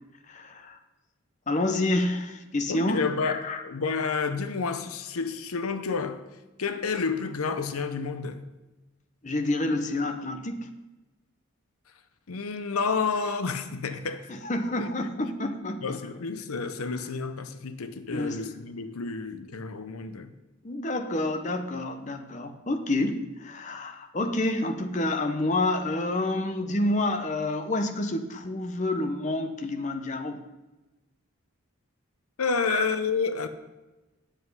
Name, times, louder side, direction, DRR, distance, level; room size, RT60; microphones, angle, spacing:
voice 1, 0.3-0.8 1.5-3.6 9.2-10.7 14.3-16.0 18.1-18.4 20.6-30.4 32.6-32.9, left 2 dB, 35° left, 0.8 m, -28 dB
voice 2, 2.7-6.2 6.6-8.4 12.3-14.3 14.8-14.9 15.2-15.3 15.8-20.3 32.4-33.5, left 5 dB, 90° left, 0.8 m, -30 dB
10.0 x 8.0 x 5.5 m
head